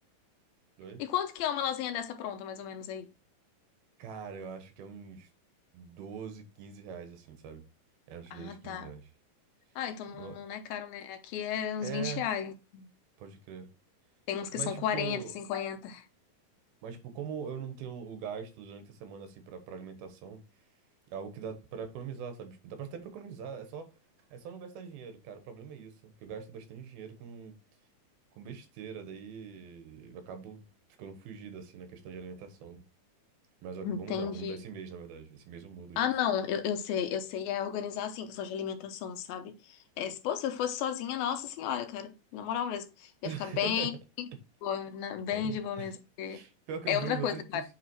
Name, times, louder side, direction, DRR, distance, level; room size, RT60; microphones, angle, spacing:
voice 1, 1.0-3.1 8.3-8.9 9.8-12.9 14.3-16.0 33.8-34.6 36.0-43.9 44.6-46.4 46.9-47.6, left 9 dB, 85° left, 2.7 m, -33 dB
voice 2, 4.0-5.3 5.7-7.6 8.1-9.1 10.1-10.4 11.8-12.3 13.2-13.7 14.5-15.3 16.8-20.4 21.1-23.9 24.3-27.6 28.4-30.7 31.0-32.8 33.6-36.1 43.2-43.9 45.3-45.9 46.2-47.6, right 7 dB, 85° right, 3.1 m, -42 dB
8.1 x 3.9 x 4.6 m
omnidirectional pair, 4.2 m